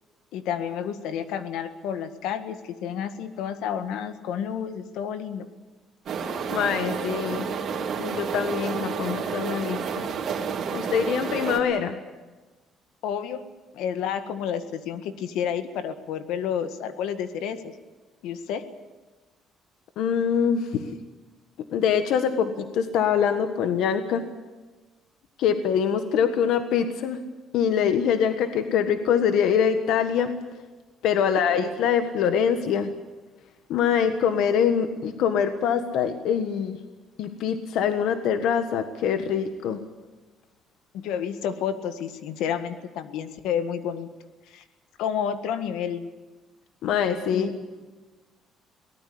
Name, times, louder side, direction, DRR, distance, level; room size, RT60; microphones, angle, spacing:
voice 1, 0.3-5.5 13.0-13.4 13.7-17.7 18.2-18.6 31.2-31.4 40.9-44.1 44.5-44.6 45.0-46.1 47.3-47.7, left 8 dB, 85° left, 9 dB, 1.8 m, -30 dB
sound 1, 6.1-11.6, right 6 dB, 40° right, 2.8 m, -30 dB
voice 2, 6.5-7.5 8.0-10.1 10.7-11.9 20.0-20.8 21.7-24.2 25.4-27.2 27.5-30.3 31.0-32.9 33.7-36.8 37.2-39.8 46.8-47.5, left 7 dB, 70° left, 8 dB, 1.5 m, -24 dB
23.0 x 19.0 x 8.6 m, 1.2 s
cardioid pair, 170°, 0 cm